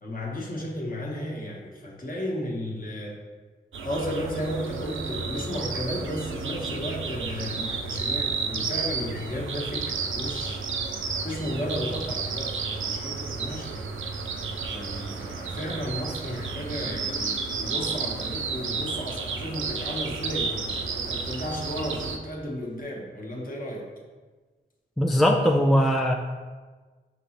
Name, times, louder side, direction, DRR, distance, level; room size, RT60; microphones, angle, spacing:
voice 1, 0.0-3.2 3.8-10.6 11.2-13.8 14.7-23.8, equal, 45° left, -1 dB, 1.0 m, -34 dB
sound 1, 3.7-22.2, right 5 dB, 70° right, 0.5 m, -32 dB
voice 2, 25.0-26.1, equal, ahead, 2 dB, 0.3 m, -20 dB
5.2 x 2.8 x 2.9 m, 1.4 s
cardioid pair, 45°, 21 cm